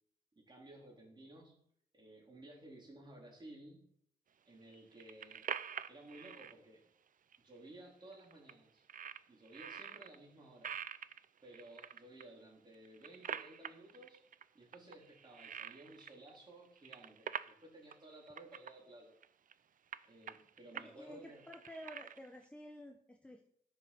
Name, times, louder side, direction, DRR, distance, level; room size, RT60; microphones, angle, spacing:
voice 1, 0.4-1.6 1.9-3.8 4.5-5.5 5.9-6.8 7.4-8.8 9.3-10.7 11.4-14.2 14.5-19.2 20.0-21.4, right 1 dB, 30° right, -1 dB, 3.9 m, -56 dB
sound 1, 4.7-6.5 7.3-7.4 7.7-7.8 8.1-8.5 8.9-10.2 10.6-12.2 12.7-14.4 14.7-16.4 16.6-17.6 17.9-18.0 18.3-18.7 19.2-19.5 19.9-20.9 21.2-22.4, right 8 dB, 60° right, 0.5 m, -46 dB
voice 2, 20.7-23.5, equal, 5° left, 2 dB, 1.0 m, -52 dB
14.0 x 6.8 x 6.1 m, 0.70 s
wide cardioid pair, 135°, 16 cm